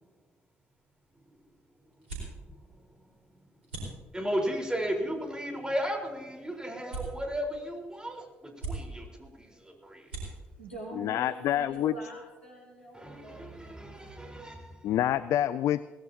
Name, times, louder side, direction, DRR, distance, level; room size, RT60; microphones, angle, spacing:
sound 1, 0.6-12.2, right 3 dB, 85° right, 4.5 m, -46 dB
voice 1, 4.1-10.1 12.9-14.7, equal, 15° right, 0 dB, 4.3 m, -35 dB
voice 2, 10.2-13.7, right 1 dB, 90° left, -4 dB, 4.4 m, -45 dB
voice 3, 11.0-11.9 14.8-15.8, left 12 dB, 60° left, 16 dB, 0.4 m, -27 dB
21.5 x 18.5 x 2.9 m, 1.3 s
figure-of-eight pair, 45°, 6 cm